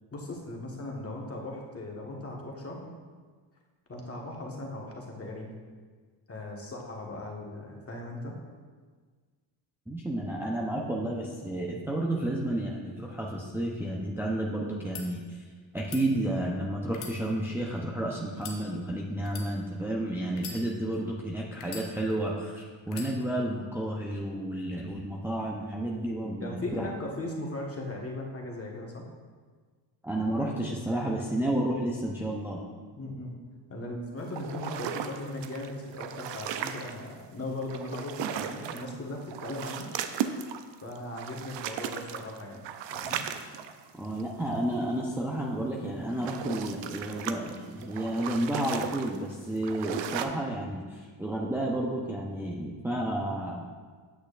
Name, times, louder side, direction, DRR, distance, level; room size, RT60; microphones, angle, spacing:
voice 1, 0.1-2.9 3.9-5.5 6.3-8.4 26.4-29.0 33.0-33.3 33.7-39.9 40.3-40.5 40.8-42.6 42.9-43.2, left 1 dB, 30° left, -1 dB, 1.5 m, -38 dB
voice 2, 9.9-15.4 15.7-26.9 30.0-32.6 44.0-53.6, right 1 dB, 5° right, -3 dB, 0.8 m, -31 dB
sound 1, 14.7-15.1 15.8-16.0 16.9-17.8 18.3-18.6 19.2-19.5 20.3-21.0 21.6-22.3 22.9-23.1, left 6 dB, 85° left, 1.0 m, -42 dB
sound 2, 34.4-37.1 37.6-39.0 39.2-44.3 45.9-50.3, right 9 dB, 60° right, 0.6 m, -36 dB
8.3 x 6.2 x 2.5 m, 1.5 s
supercardioid pair, 70°, 49 cm